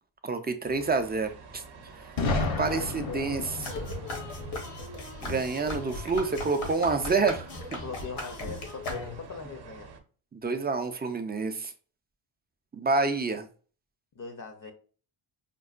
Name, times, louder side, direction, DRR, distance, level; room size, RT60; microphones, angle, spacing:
voice 1, 0.2-1.6 2.4-3.4 5.2-7.8 10.3-11.7 12.7-13.5, right 4 dB, 25° right, 0.3 m, -28 dB
sound 1, 0.6-10.0, right 4 dB, 55° right, 0.7 m, -49 dB
Boom, 2.2-6.0, left 2 dB, 65° left, 0.9 m, -33 dB
voice 2, 2.6-3.5 7.8-9.9 14.2-14.7, left 4 dB, 40° left, 0.5 m, -41 dB
sound 2, 3.6-9.4, left 2 dB, 85° left, 1.2 m, -38 dB
5.2 x 2.1 x 2.4 m
wide cardioid pair, 110°, 50 cm